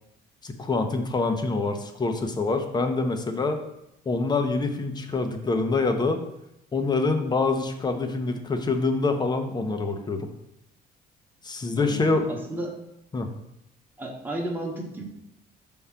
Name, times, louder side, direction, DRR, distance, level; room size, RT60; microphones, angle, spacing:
voice 1, 0.4-3.6 4.1-6.2 6.7-10.3 11.4-12.3 13.1-13.3, left 3 dB, 25° left, 6 dB, 0.8 m, -25 dB
voice 2, 11.7-12.8 14.0-15.0, right 1 dB, 10° right, -1 dB, 1.2 m, -33 dB
5.4 x 3.7 x 5.7 m, 0.83 s
cardioid pair, 110°, 17 cm